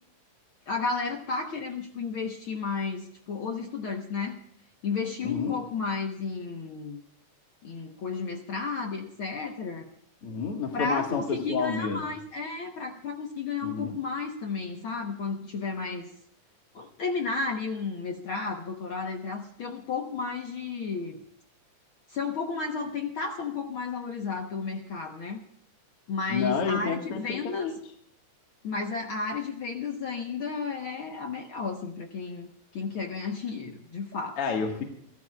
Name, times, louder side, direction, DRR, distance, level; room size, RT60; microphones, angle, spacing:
voice 1, 0.7-4.4 4.8-7.0 7.6-9.9 10.7-16.1 16.7-21.2 22.1-25.4 26.1-27.7 28.6-32.5 32.7-34.4, left 4 dB, 65° left, 3 dB, 1.3 m, -33 dB
voice 2, 5.2-5.6 10.2-12.0 13.6-14.0 26.3-27.7 34.4-34.8, left 5 dB, 50° left, 1 dB, 2.2 m, -29 dB
30.0 x 12.5 x 2.3 m, 0.66 s
omnidirectional pair, 3.8 m